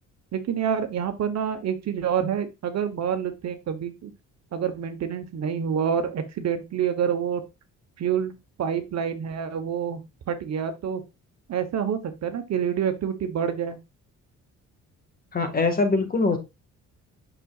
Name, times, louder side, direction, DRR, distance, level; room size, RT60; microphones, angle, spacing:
voice 1, 0.3-4.1 4.5-7.4 8.0-8.3 8.6-10.0 10.3-11.0 11.5-13.8, right 8 dB, 60° right, 1.1 m, -27 dB
voice 2, 15.3-16.4, left 3 dB, 30° left, 1.7 m, -22 dB
6.6 x 6.1 x 2.4 m
cardioid pair, 90°, 30 cm